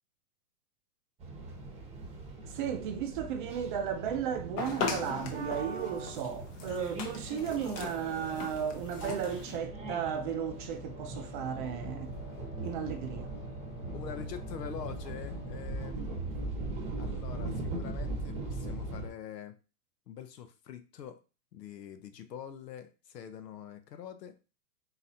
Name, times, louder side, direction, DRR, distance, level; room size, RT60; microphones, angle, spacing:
sound 1, 1.2-19.1, right 2 dB, 15° right, 1.0 m, -40 dB
voice 1, 2.4-12.1 12.6-13.3 15.9-16.1, right 8 dB, 35° right, 0.5 m, -35 dB
sound 2, 4.6-9.5, left 5 dB, 25° left, 0.7 m, -39 dB
Wind instrument woodwind instrument, 7.2-15.8, left 6 dB, 40° left, 1.1 m, -52 dB
voice 2, 13.9-16.4 17.0-19.5 20.1-21.2 21.5-24.4, left 8 dB, 75° left, 0.9 m, -45 dB
4.0 x 4.0 x 2.8 m
hypercardioid pair, 130°, 49 cm